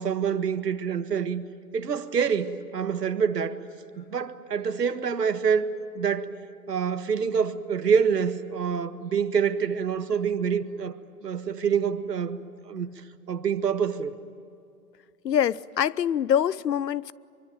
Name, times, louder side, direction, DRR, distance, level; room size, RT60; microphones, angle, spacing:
voice 1, 0.0-1.4 1.7-3.6 4.0-6.3 6.7-11.0 11.2-12.9 13.3-14.1, right 6 dB, 80° right, 1.8 m, -26 dB
voice 2, 15.2-17.1, left 9 dB, 90° left, 0.8 m, -24 dB
24.5 x 24.0 x 9.2 m
hypercardioid pair, 165°, 47 cm